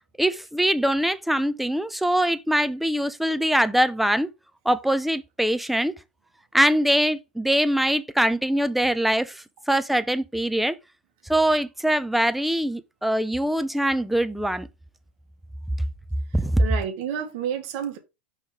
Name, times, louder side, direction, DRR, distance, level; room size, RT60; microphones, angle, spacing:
voice 1, 0.2-4.3 4.7-5.9 6.5-10.8 11.3-14.7 16.3-16.6, right 1 dB, ahead, 0.6 m, -23 dB
voice 2, 16.3-18.0, right 8 dB, 60° right, 1.6 m, -30 dB
5.5 x 3.5 x 4.8 m
hypercardioid pair, 100°, 6 cm